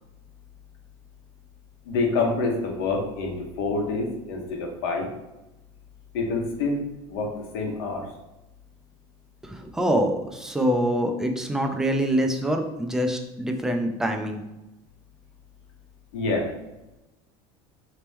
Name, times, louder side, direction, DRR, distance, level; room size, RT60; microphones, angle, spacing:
voice 1, 1.9-5.1 6.1-6.8 7.1-8.0 16.1-16.5, left 3 dB, 80° left, 1 dB, 1.1 m, -27 dB
voice 2, 9.4-14.4, equal, 5° right, 4 dB, 0.3 m, -25 dB
4.2 x 3.0 x 3.4 m, 0.97 s
cardioid pair, 165°, 13 cm